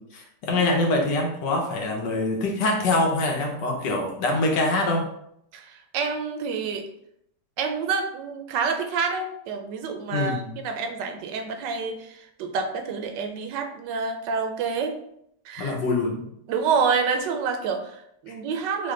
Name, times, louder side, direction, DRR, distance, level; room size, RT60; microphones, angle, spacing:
voice 1, 0.1-5.1 10.1-10.5 15.6-16.2, left 2 dB, 85° left, 1 dB, 1.6 m, -24 dB
voice 2, 5.5-6.9 7.6-14.9 15.4-15.8 16.5-18.9, right 5 dB, 90° right, 5 dB, 1.3 m, -28 dB
4.3 x 3.3 x 3.7 m, 0.73 s
omnidirectional pair, 1.8 m